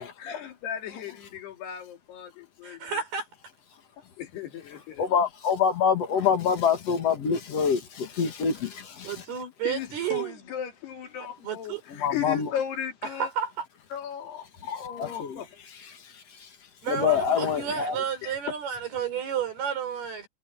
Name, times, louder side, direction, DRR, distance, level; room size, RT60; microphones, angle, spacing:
voice 1, 0.0-2.9 4.2-5.1 9.6-13.3 13.9-15.6 17.7-17.8 18.2-18.3, left 9 dB, 80° left, 4.6 m, -36 dB
voice 2, 2.6-3.3 9.0-10.4 11.4-11.8 13.1-13.7 16.8-20.3, right 7 dB, 70° right, 7.4 m, -31 dB
voice 3, 5.0-9.2 12.0-12.5 15.0-15.4 16.0-16.5 16.9-18.0, left 6 dB, 50° left, 2.2 m, -26 dB
omnidirectional pair, 4.7 m